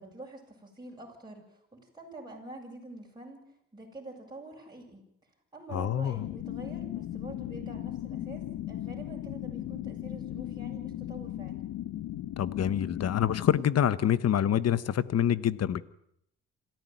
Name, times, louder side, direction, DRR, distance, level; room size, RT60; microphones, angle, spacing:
voice 1, 0.0-3.4 3.7-5.0 5.5-11.6, right 2 dB, 15° right, 7.5 m, -46 dB
voice 2, 5.7-6.2 12.4-15.8, left 10 dB, 55° left, 1.2 m, -26 dB
sound 1, 6.2-13.6, left 13 dB, 85° left, 1.1 m, -37 dB
26.5 x 14.0 x 9.4 m
cardioid pair, 90°, 30 cm